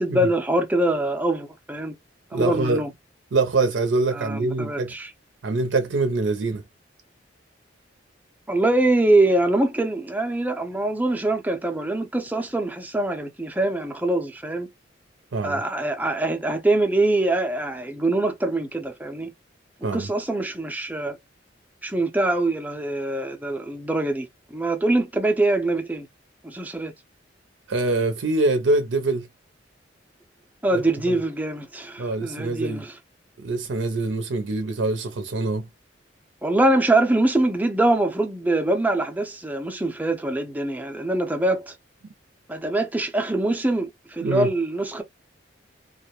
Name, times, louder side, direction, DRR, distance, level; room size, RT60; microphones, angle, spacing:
voice 1, 0.0-2.0 2.3-2.9 4.1-5.1 8.5-14.7 15.4-19.3 19.9-21.2 21.8-26.1 26.4-26.9 30.6-33.0 36.4-41.7 42.5-45.0, right 2 dB, 10° right, 0.5 m, -23 dB
voice 2, 2.3-2.8 3.3-4.9 5.4-6.6 15.3-15.6 19.8-20.1 27.7-29.3 30.7-30.8 31.1-31.2 32.0-32.9 33.4-35.7 44.2-44.5, right 3 dB, 75° right, 0.5 m, -24 dB
2.3 x 2.1 x 2.8 m
head